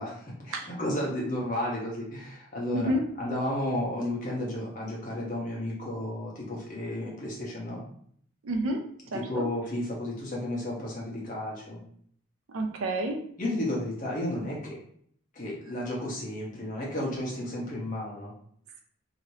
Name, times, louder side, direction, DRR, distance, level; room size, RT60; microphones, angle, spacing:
voice 1, 0.0-2.9 3.2-7.8 9.1-11.8 13.4-14.8 15.3-18.3, left 1 dB, 40° left, -4 dB, 1.0 m, -32 dB
voice 2, 8.4-8.8 9.1-9.4 12.5-13.2, right 1 dB, 85° right, 3 dB, 0.5 m, -29 dB
3.1 x 2.9 x 2.7 m, 0.64 s
head